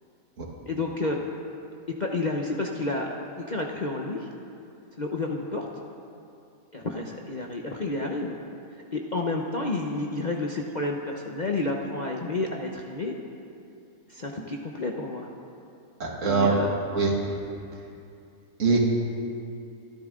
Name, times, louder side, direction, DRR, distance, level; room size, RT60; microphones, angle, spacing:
voice 1, 0.7-1.2 1.9-3.1 3.4-4.3 5.0-5.7 6.7-8.4 8.9-13.2 14.1-15.3 16.2-16.7, left 2 dB, 35° left, 0 dB, 0.9 m, -30 dB
voice 2, 16.0-16.5 16.9-17.1 18.6-18.8, right 4 dB, 60° right, -1 dB, 2.3 m, -23 dB
27.0 x 11.0 x 3.8 m, 2.6 s
omnidirectional pair, 1.5 m